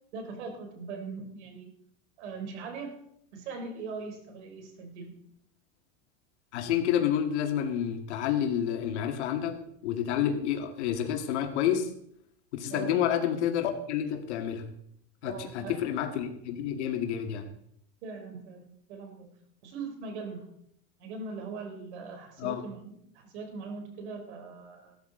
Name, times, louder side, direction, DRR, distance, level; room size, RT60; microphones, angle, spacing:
voice 1, 0.1-1.7 2.2-3.0 3.3-5.1 12.7-13.0 15.2-15.8 18.0-19.4 19.6-20.5 21.0-25.0, right 4 dB, 80° right, 3 dB, 3.7 m, -40 dB
voice 2, 6.5-11.9 12.5-14.6 15.2-17.5 22.4-22.6, left 9 dB, 80° left, 4 dB, 2.1 m, -29 dB
16.0 x 13.0 x 3.9 m, 0.72 s
supercardioid pair, 175°, 34 cm